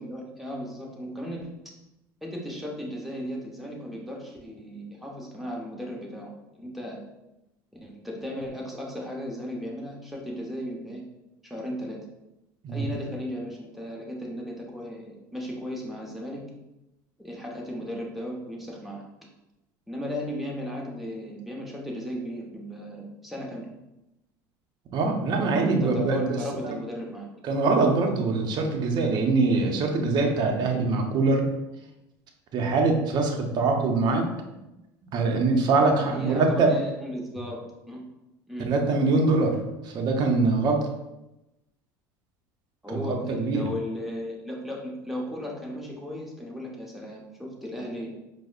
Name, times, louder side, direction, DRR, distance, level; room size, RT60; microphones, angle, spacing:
voice 1, 0.0-1.7 2.2-7.0 7.8-11.0 11.4-12.0 12.7-16.4 17.2-19.0 19.9-23.7 25.4-27.3 36.0-38.0 38.5-38.7 42.8-48.1, equal, ahead, -2 dB, 0.9 m, -36 dB
voice 2, 24.9-26.4 26.6-26.8 27.4-31.5 32.5-34.3 35.1-36.7 38.7-39.6 39.8-40.8 42.9-43.7, right 3 dB, 50° right, 3 dB, 0.6 m, -23 dB
4.7 x 2.0 x 2.4 m, 0.94 s
hypercardioid pair, 85°, 9 cm